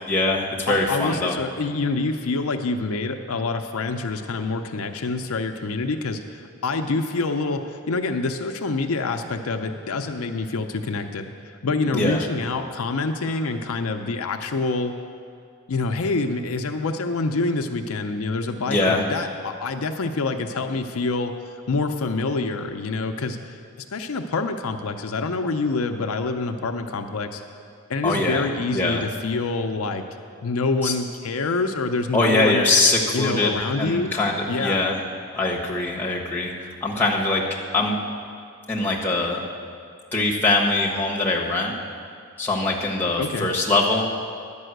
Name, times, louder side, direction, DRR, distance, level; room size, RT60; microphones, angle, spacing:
voice 1, 0.1-1.4 11.9-12.2 18.7-19.0 28.0-28.4 28.7-29.0 30.8-30.9 32.1-35.0 35.3-36.5 36.8-37.4 37.7-38.0 38.7-39.5 40.1-41.7 42.4-44.1, left 2 dB, 10° left, -3 dB, 1.1 m, -22 dB
voice 2, 0.7-14.9 15.7-23.5 23.9-27.4 27.9-30.0 30.4-32.6 33.1-34.1 34.5-34.8 43.2-43.5, left 3 dB, 75° left, 5 dB, 0.6 m, -26 dB
11.0 x 5.5 x 7.9 m, 2.3 s
head